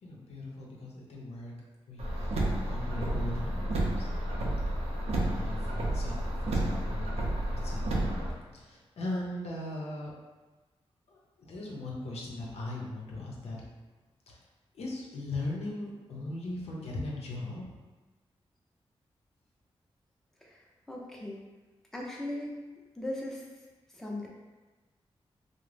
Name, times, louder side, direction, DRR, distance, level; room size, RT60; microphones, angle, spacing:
voice 1, 0.0-1.5 1.9-4.1 5.0-8.0 8.5-10.1 11.1-13.6 14.3-14.4 14.7-17.7, left 2 dB, 90° left, -3 dB, 0.6 m, -39 dB
Car, 2.0-8.3, right 1 dB, 90° right, 0.5 m, -31 dB
voice 2, 20.9-21.4 21.9-22.5 23.0-23.4 23.9-24.3, left 1 dB, 5° left, -3 dB, 0.5 m, -37 dB
2.5 x 2.0 x 3.2 m, 1.2 s
wide cardioid pair, 100°, 10 cm